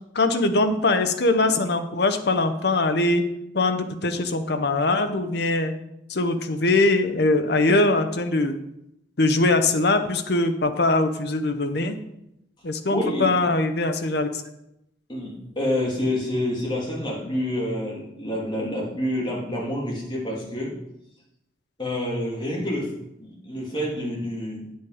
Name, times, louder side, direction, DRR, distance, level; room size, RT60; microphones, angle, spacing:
voice 1, 0.1-3.2 3.5-5.7 6.1-8.6 9.2-12.0 12.6-14.4, left 2 dB, 60° left, 7 dB, 0.8 m, -22 dB
voice 2, 12.9-13.3 15.1-20.7 21.8-24.8, left 1 dB, 25° left, -3 dB, 2.5 m, -28 dB
8.8 x 7.4 x 4.8 m, 0.82 s
head